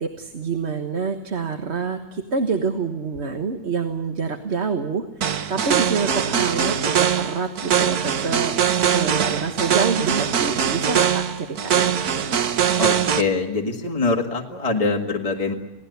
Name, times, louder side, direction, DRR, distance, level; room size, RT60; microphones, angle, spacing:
voice 1, 0.0-12.0, right 5 dB, 45° right, 6 dB, 1.6 m, -27 dB
sound 1, 5.2-13.2, right 8 dB, 85° right, 1.6 m, -22 dB
voice 2, 12.8-15.5, left 3 dB, 25° left, 1 dB, 1.9 m, -24 dB
28.0 x 18.0 x 8.1 m, 1.1 s
omnidirectional pair, 1.6 m